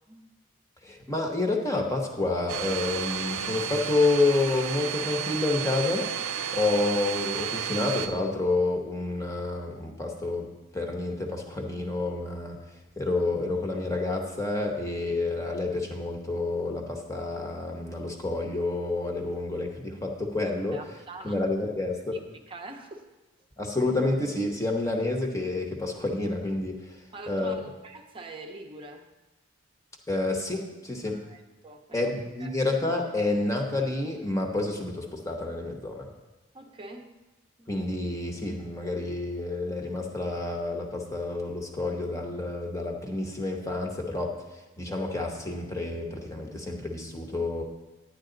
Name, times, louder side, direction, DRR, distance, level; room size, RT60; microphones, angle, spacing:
voice 1, 0.8-6.1 6.5-12.6 13.0-20.8 21.2-22.2 23.6-27.0 27.3-27.6 30.1-31.2 31.9-36.1 37.7-44.4 44.8-47.6, left 2 dB, 15° left, 2 dB, 0.9 m, -29 dB
Domestic sounds home sounds, 2.5-8.1, right 8 dB, 75° right, 0.7 m, -32 dB
voice 2, 20.7-21.4 22.1-23.0 27.1-29.1 31.0-32.1 32.4-32.5 36.5-37.1 37.6-37.7, right 2 dB, 25° right, 2 dB, 0.8 m, -44 dB
10.5 x 9.7 x 3.9 m, 1.1 s
head